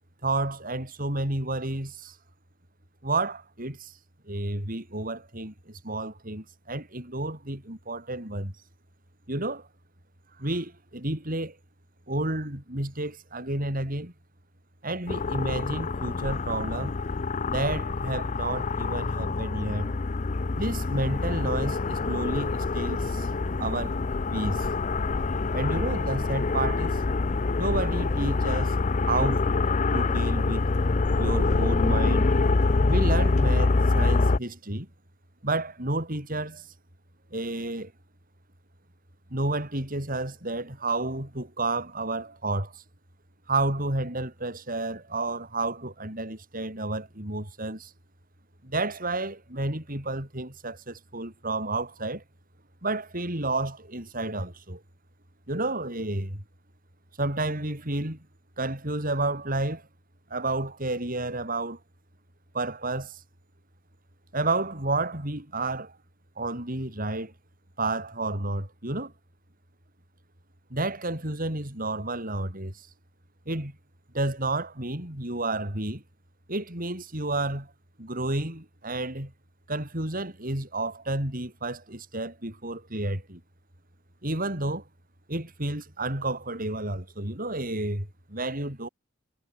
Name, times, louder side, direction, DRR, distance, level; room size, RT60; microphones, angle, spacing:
voice 1, 0.2-2.1 3.0-3.9 4.3-8.5 9.3-9.7 10.4-11.6 12.1-14.1 14.8-16.9 17.4-19.9 20.5-23.3 23.6-24.0 24.3-24.7 25.5-27.0 27.6-28.7 29.1-29.5 29.9-30.7 31.2-32.3 32.9-34.9 35.4-36.7 37.3-37.9 39.3-42.8 43.5-47.9 48.6-52.2 52.8-54.8 55.5-56.4 57.2-58.2 58.6-59.8 60.3-61.8 62.5-63.2 64.3-66.0 66.4-67.3 67.8-69.1 70.7-72.9 73.5-73.8 74.1-76.0 76.5-77.7 78.0-79.3 79.7-83.4 84.2-84.8 85.3-88.9, right 2 dB, 45° right, 7.9 m, -31 dB
sound 1, 15.1-34.4, left 3 dB, 40° left, 0.6 m, -26 dB
head